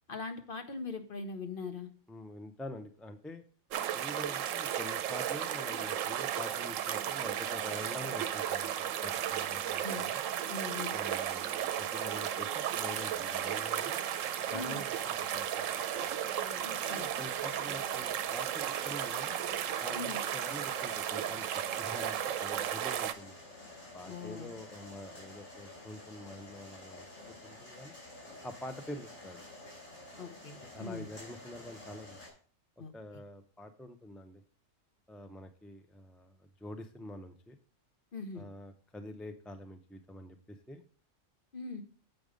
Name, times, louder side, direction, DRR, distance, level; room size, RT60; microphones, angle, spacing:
voice 1, 0.1-1.9 9.8-10.1 10.5-11.0 14.5-14.8 16.6-17.1 19.9-20.2 24.1-24.5 30.2-31.1 32.8-32.9 38.1-38.4 41.5-41.8, left 4 dB, 45° left, 7 dB, 1.0 m, -41 dB
voice 2, 2.1-3.4 3.9-10.2 10.9-14.0 14.5-15.6 16.4-19.4 19.8-21.5 21.8-23.4 23.9-27.1 27.4-27.9 28.4-29.4 30.7-32.2 32.9-34.4 35.1-37.6 38.3-40.4 40.7-40.8, left 1 dB, ahead, 6 dB, 0.4 m, -46 dB
sound 1, 3.7-23.1, right 10 dB, 80° right, 1.0 m, -34 dB
sound 2, 12.8-32.3, left 2 dB, 90° left, 4.1 m, -51 dB
7.9 x 5.3 x 5.0 m, 0.42 s
omnidirectional pair, 1.3 m